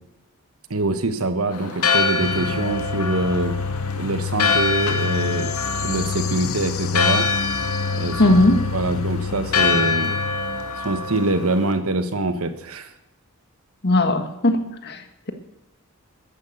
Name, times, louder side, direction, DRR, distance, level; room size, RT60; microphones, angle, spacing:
voice 1, 0.7-3.5 4.0-5.5 5.8-7.3 7.9-8.4 8.7-10.1 10.8-12.9, right 2 dB, 70° right, 9 dB, 1.4 m, -24 dB
Church bell, 1.5-11.7, left 4 dB, 85° left, 1.9 m, -25 dB
sound 1, 2.2-11.3, left 5 dB, 65° left, 0.7 m, -28 dB
voice 2, 8.2-8.6 13.8-15.3, left 2 dB, 50° left, 7 dB, 1.7 m, -18 dB
13.5 x 10.5 x 8.0 m, 0.96 s
head